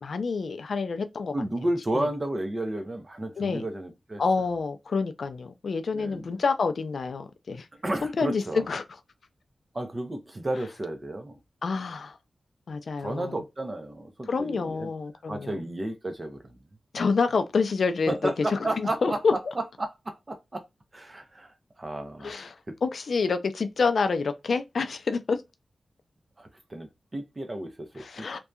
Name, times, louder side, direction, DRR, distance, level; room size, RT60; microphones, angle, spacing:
voice 1, 0.0-1.3 1.9-2.1 3.4-3.6 4.2-7.7 8.0-8.8 11.6-12.2 12.7-13.4 14.3-15.5 16.9-19.3 22.2-25.4 28.0-28.4, left 4 dB, 65° left, 0.3 m, -27 dB
voice 2, 1.3-4.2 5.9-6.3 7.7-8.7 9.7-11.4 13.0-14.9 15.3-16.6 18.1-19.2 19.8-20.6 20.9-22.3 22.7-22.8 26.4-28.4, right 1 dB, 25° right, 0.6 m, -32 dB
2.7 x 2.2 x 2.3 m
wide cardioid pair, 145°, 0 cm